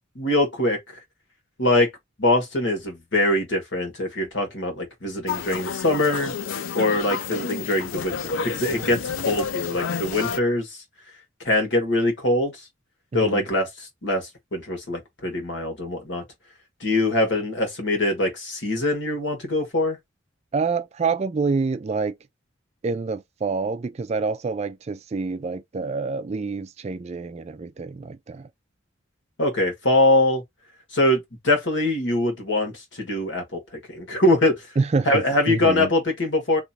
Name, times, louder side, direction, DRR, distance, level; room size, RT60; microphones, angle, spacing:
voice 1, 0.1-0.8 1.6-1.9 2.2-6.3 6.7-10.8 11.4-12.5 13.1-16.2 16.8-20.0 29.4-30.4 30.9-33.6 33.9-34.7 35.0-36.6, left 1 dB, 65° left, 1.4 m, -23 dB
sound 1, 5.3-10.4, left 6 dB, 85° left, 0.5 m, -30 dB
voice 2, 13.1-13.4 20.5-22.1 22.8-28.5 34.8-35.9, right 4 dB, 35° right, 0.3 m, -27 dB
2.9 x 2.4 x 4.1 m
head